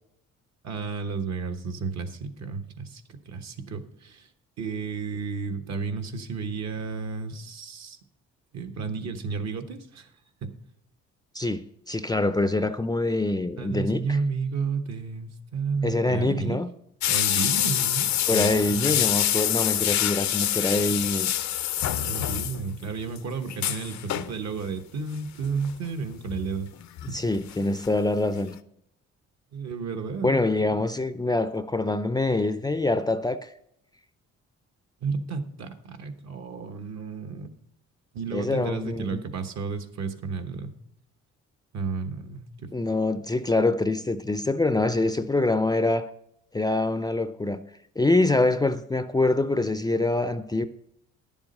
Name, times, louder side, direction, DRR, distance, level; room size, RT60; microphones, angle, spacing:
voice 1, 0.6-4.3 4.6-8.0 8.5-10.1 10.4-10.6 13.6-16.6 17.1-19.1 22.0-26.7 27.1-27.2 29.5-30.7 35.0-37.5 38.1-40.7 41.7-42.7, right 5 dB, 60° right, 1.2 m, -32 dB
voice 2, 11.3-14.2 15.8-16.7 18.3-21.3 27.1-28.5 30.2-33.5 38.3-39.2 42.7-46.1 46.5-47.6 48.0-50.7, left 2 dB, 15° left, 0.4 m, -25 dB
sound 1, 17.0-22.9 23.2-23.3 23.5-24.4 25.4-25.7 26.3-27.6 27.8-27.9 28.3-28.4, left 12 dB, 65° left, 0.6 m, -26 dB
10.5 x 7.2 x 5.3 m
cardioid pair, 90°, 30 cm